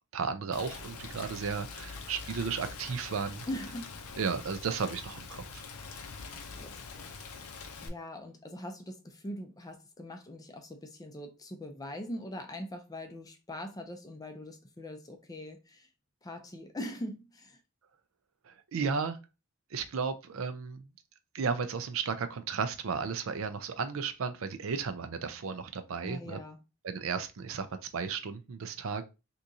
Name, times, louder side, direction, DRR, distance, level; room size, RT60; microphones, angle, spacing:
voice 1, 0.1-3.4 4.2-5.6 18.4-19.2 19.7-20.9 21.3-26.4 26.8-27.7 27.9-29.0, right 5 dB, 65° right, 0.4 m, -34 dB
Rain, 0.5-7.9, left 4 dB, 85° left, 0.6 m, -44 dB
voice 2, 3.5-3.9 6.3-7.1 7.4-15.9 16.2-17.6 26.0-26.6, left 1 dB, 15° left, 0.4 m, -42 dB
3.6 x 2.9 x 2.6 m
head